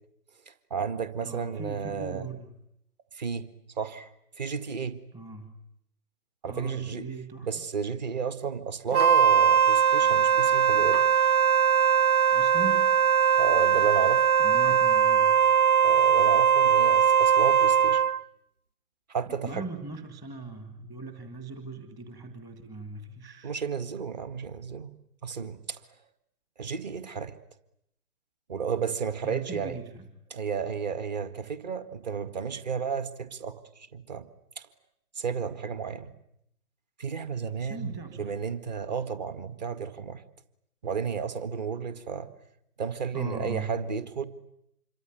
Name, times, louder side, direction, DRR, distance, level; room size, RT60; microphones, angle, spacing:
voice 1, 0.5-2.3 3.1-3.5 3.8-4.1 4.4-5.0 6.4-7.0 7.4-11.0 13.4-14.3 15.8-18.0 19.1-19.6 23.4-24.9 25.2-25.8 26.6-27.3 28.5-29.8 30.3-34.3 34.6-34.7 35.2-36.1 37.0-40.2 40.8-42.3 42.8-44.3, right 6 dB, 30° right, 13 dB, 1.8 m, -32 dB
voice 2, 1.2-2.5 5.1-5.6 6.5-7.5 12.3-12.8 14.4-15.8 19.3-23.5 29.2-30.1 37.3-38.4 43.1-43.8, right 3 dB, 10° right, 7 dB, 1.5 m, -40 dB
Wind instrument woodwind instrument, 8.9-18.2, right 7 dB, 70° right, 1.1 m, -21 dB
26.5 x 23.5 x 9.3 m, 0.75 s
figure-of-eight pair, 140°, 45 cm